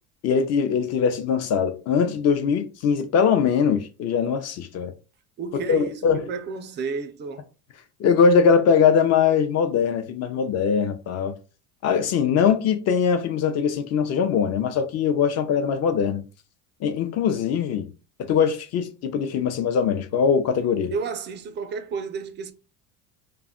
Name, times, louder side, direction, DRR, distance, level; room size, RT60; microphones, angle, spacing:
voice 1, 0.2-4.9 5.5-6.2 8.0-11.3 11.8-16.2 16.8-17.9 18.2-20.9, left 6 dB, 40° left, 0.6 m, -21 dB
voice 2, 5.4-7.4 20.9-22.5, right 5 dB, 30° right, 0.4 m, -31 dB
2.3 x 2.1 x 3.6 m
supercardioid pair, 115°, 40 cm